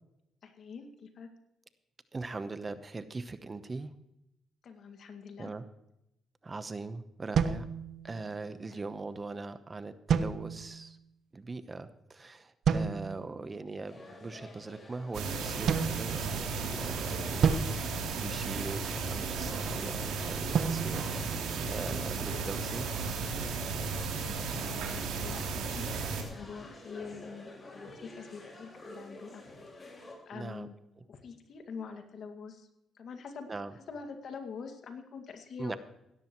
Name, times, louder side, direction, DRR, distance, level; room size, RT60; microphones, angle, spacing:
voice 1, 0.4-1.3 4.6-5.5 8.7-8.8 13.4-13.5 24.2-25.4 25.7-25.8 26.1-29.4 30.3-30.7 31.1-32.7 32.9-33.5 33.9-35.8, left 5 dB, 60° left, 5 dB, 2.0 m, -45 dB
voice 2, 2.1-3.9 5.4-5.6 6.4-7.7 8.0-11.0 11.3-21.1 21.4-23.3 30.3-30.7 33.5-33.7 35.6-35.8, right 3 dB, 30° right, 12 dB, 0.9 m, -41 dB
sound 1, 7.3-8.4 10.1-10.9 12.6-13.3 15.7-16.7 17.4-18.9 20.5-22.0, right 6 dB, 65° right, 0.9 m, -31 dB
sound 2, 13.8-30.2, left 2 dB, 35° left, 4.7 m, -48 dB
sound 3, 15.1-26.2, right 4 dB, 90° right, 3.0 m, -34 dB
16.5 x 13.0 x 3.1 m, 0.86 s
cardioid pair, 90°, 0 cm